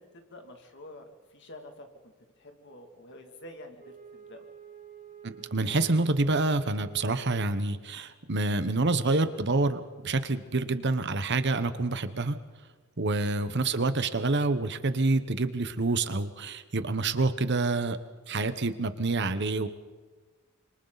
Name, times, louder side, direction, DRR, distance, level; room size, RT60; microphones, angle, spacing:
voice 1, 0.0-4.5, left 1 dB, 60° left, 4 dB, 2.6 m, -49 dB
Wind instrument woodwind instrument, 3.8-8.0, right 7 dB, 40° right, 1.9 m, -49 dB
voice 2, 5.2-12.4 13.0-18.0 18.3-19.7, right 3 dB, 55° right, 11 dB, 1.1 m, -27 dB
26.5 x 25.5 x 4.1 m, 1.3 s
head